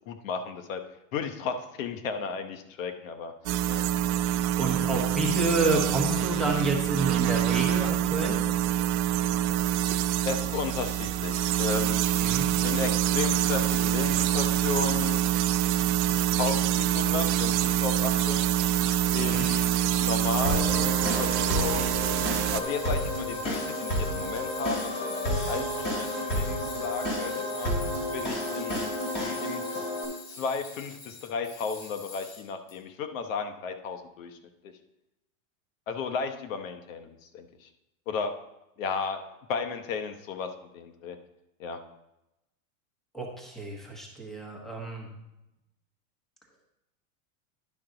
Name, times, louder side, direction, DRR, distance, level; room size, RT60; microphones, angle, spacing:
voice 1, 0.1-0.8 1.1-3.3 3.7-3.8 10.2-12.2 12.6-15.2 16.4-18.4 19.1-19.7 20.0-22.1 22.5-27.7 28.1-28.9 29.1-29.6 30.3-34.4 34.6-34.7 35.9-37.7 38.1-38.3 38.8-39.2 39.5-41.2 41.6-41.8, left 5 dB, 70° left, 7 dB, 1.0 m, -34 dB
sound 1, 3.5-22.6, right 12 dB, 55° right, 0.6 m, -26 dB
voice 2, 4.6-8.4 12.2-12.5 19.2-19.5 43.1-45.1, right 2 dB, ahead, 0 dB, 1.1 m, -29 dB
Tools, 16.3-32.8, left 4 dB, 45° left, 1.9 m, -44 dB
sound 2, 20.4-30.0, equal, 25° left, 2.8 m, -31 dB
11.0 x 5.8 x 3.9 m, 0.92 s
supercardioid pair, 155°, 41 cm